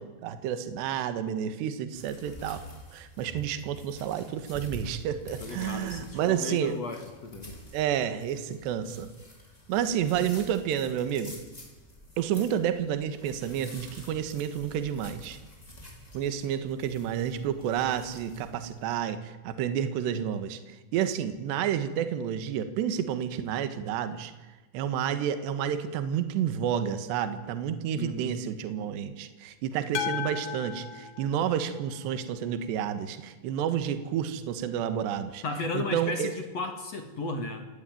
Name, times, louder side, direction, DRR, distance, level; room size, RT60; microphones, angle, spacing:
voice 1, 0.0-2.6 2.9-6.8 7.7-9.1 9.7-11.4 12.2-15.4 16.1-24.3 24.7-35.4 35.7-36.3, right 9 dB, 70° right, 11 dB, 3.5 m, -30 dB
sound 1, 1.9-18.9, equal, 10° left, 4.9 m, -48 dB
voice 2, 5.4-7.6 28.0-28.4 35.4-37.7, left 3 dB, 45° left, 5 dB, 2.3 m, -35 dB
sound 2, 29.9-32.2, left 9 dB, 65° left, 2.0 m, -36 dB
27.0 x 19.0 x 9.3 m, 1.2 s
omnidirectional pair, 5.5 m